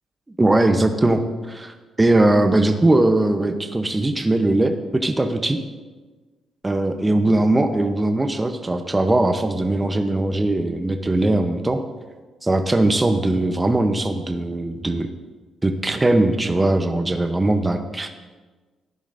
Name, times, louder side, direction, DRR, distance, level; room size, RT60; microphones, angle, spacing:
voice 1, 0.4-5.6 6.6-11.8 12.4-15.1 15.6-18.1, right 2 dB, 15° right, 6 dB, 0.8 m, -20 dB
14.5 x 10.5 x 2.6 m, 1.3 s
cardioid pair, 90°, 0 cm